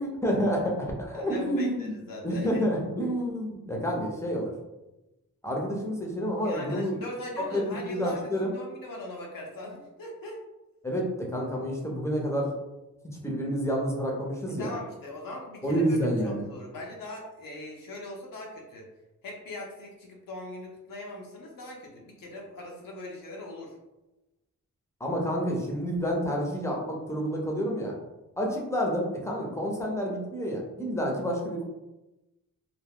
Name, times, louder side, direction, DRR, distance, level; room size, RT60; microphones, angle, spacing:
voice 1, 0.0-2.0 2.2-4.5 5.4-7.0 7.4-8.5 10.8-12.5 13.2-14.7 15.6-16.4 25.0-27.9 28.4-31.6, equal, 10° left, -1 dB, 0.8 m, -29 dB
voice 2, 1.1-2.6 6.4-10.4 14.6-16.0 16.2-18.9 19.2-23.7, left 1 dB, 70° left, -1 dB, 0.7 m, -40 dB
2.3 x 2.0 x 3.5 m, 1.0 s
cardioid pair, 60°, 35 cm